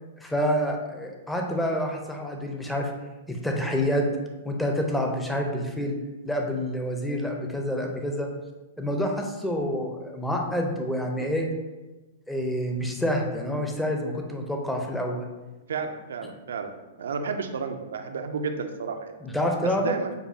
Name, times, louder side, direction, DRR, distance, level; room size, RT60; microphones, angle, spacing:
voice 1, 0.2-2.9 3.3-4.0 4.4-5.9 6.2-8.3 8.8-11.5 12.3-15.3 19.2-20.0, equal, 5° left, 2 dB, 0.6 m, -28 dB
voice 2, 15.7-16.7 17.0-19.1 19.6-20.1, right 5 dB, 80° right, 6 dB, 0.4 m, -32 dB
6.7 x 2.3 x 2.7 m, 1.1 s
hypercardioid pair, 125°, 0 cm